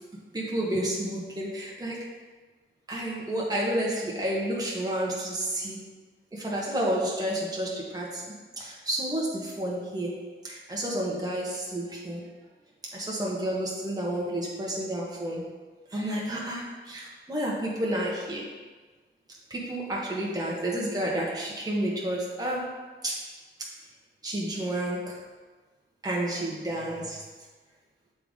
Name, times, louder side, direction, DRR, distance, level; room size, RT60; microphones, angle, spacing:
voice 1, 0.3-2.1 2.9-5.8 6.3-12.2 12.9-15.4 15.9-18.5 19.5-22.7 23.0-23.3 24.2-25.2 26.0-27.2, right 1 dB, 20° right, -4 dB, 1.2 m, -30 dB
6.8 x 3.8 x 3.7 m, 1.3 s
cardioid pair, 65°, 21 cm